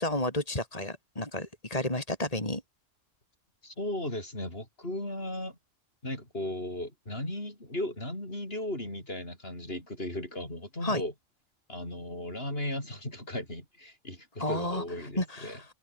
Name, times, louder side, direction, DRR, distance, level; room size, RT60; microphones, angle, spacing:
voice 1, 0.0-2.6 10.8-11.0 14.4-14.8 15.2-15.7, left 1 dB, 30° left, 5.0 m, -31 dB
voice 2, 3.6-5.6 6.0-11.1 11.7-15.6, left 1 dB, 50° left, 7.5 m, -36 dB
omnidirectional pair, 1.2 m